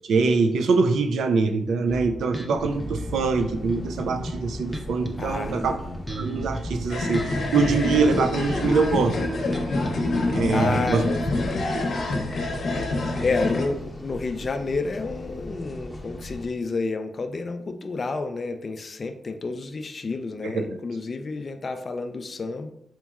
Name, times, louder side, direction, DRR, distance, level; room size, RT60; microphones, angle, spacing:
voice 1, 0.0-5.8 6.1-9.2 10.3-11.0 11.7-11.9 20.5-20.8, right 4 dB, 85° right, 7 dB, 0.3 m, -23 dB
Bass guitar, 1.9-11.5, equal, 15° right, 0.7 m, -35 dB
sound 1, 2.6-16.4, left 1 dB, 20° left, 0.7 m, -39 dB
voice 2, 5.2-5.8 10.5-11.5 13.0-22.7, left 3 dB, 50° left, 8 dB, 0.3 m, -30 dB
sound 2, 6.9-13.7, left 2 dB, 70° left, 0.7 m, -27 dB
4.3 x 2.9 x 2.3 m, 0.76 s
cardioid pair, 60°, 0 cm